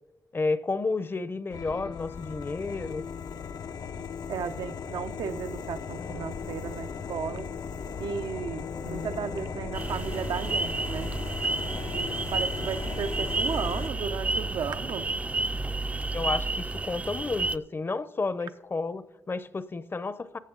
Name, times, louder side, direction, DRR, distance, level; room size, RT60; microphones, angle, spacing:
voice 1, 0.3-3.0 16.1-20.4, left 3 dB, 35° left, 0.6 m, -31 dB
sound 1, 1.5-13.9, left 6 dB, 80° left, 0.6 m, -38 dB
voice 2, 4.3-7.5 8.0-11.1 11.9-15.1, right 6 dB, 90° right, 0.6 m, -35 dB
sound 2, 6.0-16.1, left 4 dB, 60° left, 1.1 m, -43 dB
sound 3, 9.7-17.6, right 3 dB, 20° right, 0.3 m, -31 dB
14.0 x 8.6 x 3.8 m
cardioid pair, 95°, 7 cm